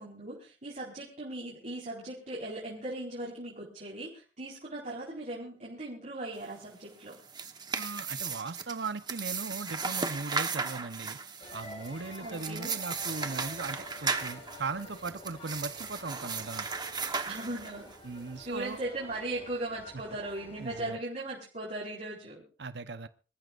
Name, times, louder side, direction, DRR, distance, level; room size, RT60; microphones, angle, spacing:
voice 1, 0.0-7.2 12.2-12.7 17.2-17.9 18.4-22.4, right 2 dB, 45° right, -5 dB, 4.6 m, -38 dB
sound 1, 7.1-18.0, right 5 dB, 25° right, 1.1 m, -36 dB
voice 2, 7.7-11.2 11.5-16.7 18.0-18.8 20.6-21.0 22.6-23.1, right 4 dB, 65° right, 11 dB, 0.9 m, -38 dB
sound 2, 11.4-20.9, left 1 dB, 30° left, 5.0 m, -49 dB
26.0 x 14.5 x 2.5 m, 0.35 s
head